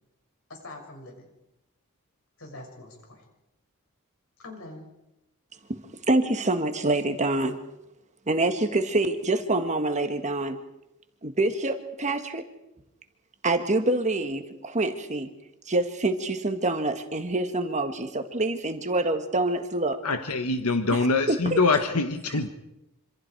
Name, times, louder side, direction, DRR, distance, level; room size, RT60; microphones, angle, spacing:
voice 1, 0.5-1.3 2.4-3.3 4.4-4.9, left 2 dB, 65° left, 2 dB, 6.5 m, -43 dB
voice 2, 6.1-7.6 8.3-10.6 11.2-12.5 13.4-15.3 15.7-20.0 21.3-21.6, right 2 dB, 30° right, 7 dB, 1.7 m, -26 dB
voice 3, 20.0-22.5, left 3 dB, 85° left, 7 dB, 1.3 m, -24 dB
27.0 x 26.5 x 4.7 m, 0.92 s
head